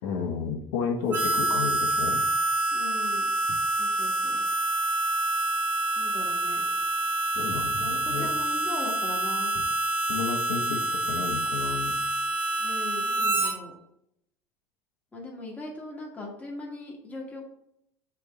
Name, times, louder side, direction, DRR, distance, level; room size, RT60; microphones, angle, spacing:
voice 1, 0.0-2.2 7.3-8.3 10.1-11.9, left 6 dB, 85° left, 1 dB, 1.5 m, -32 dB
Harmonica, 1.1-13.5, right 2 dB, 25° right, 1.0 m, -27 dB
voice 2, 2.7-4.5 6.0-6.6 7.7-9.5 12.6-13.7 15.1-17.5, left 2 dB, 20° left, -2 dB, 2.1 m, -40 dB
6.8 x 3.7 x 5.5 m, 0.76 s
cardioid pair, 140°, 8 cm